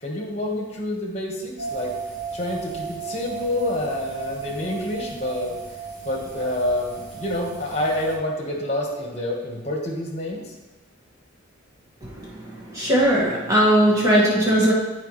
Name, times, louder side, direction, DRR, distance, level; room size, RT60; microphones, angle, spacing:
voice 1, 0.0-1.9 2.3-5.6 6.0-10.4, left 1 dB, 30° left, 0 dB, 1.5 m, -27 dB
sound 1, 1.6-8.1, right 5 dB, 80° right, 3.0 m, -35 dB
voice 2, 12.7-14.7, right 1 dB, 15° right, -6 dB, 2.0 m, -18 dB
14.0 x 4.7 x 3.3 m, 1.1 s
head